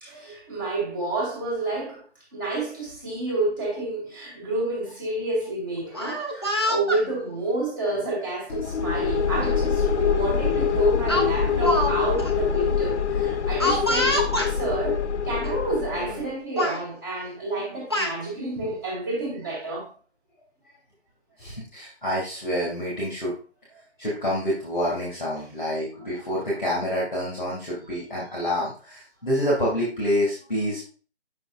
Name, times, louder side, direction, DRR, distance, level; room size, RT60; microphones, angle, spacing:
voice 1, 0.0-2.0 2.3-19.9, right 2 dB, 20° right, 2.3 m, -29 dB
Speech, 5.8-7.0 7.9-8.2 9.4-9.5 9.9-10.1 11.1-11.9 12.2-12.3 13.6-14.5 15.4-15.5 15.9-16.3 16.6-16.8 17.6-18.2, left 1 dB, 25° left, 0.7 m, -26 dB
sound 1, 8.5-16.3, left 6 dB, 85° left, 0.7 m, -25 dB
voice 2, 21.4-23.3 24.0-30.9, equal, 5° left, 1.1 m, -27 dB
8.5 x 6.2 x 2.5 m
hypercardioid pair, 180°, 34 cm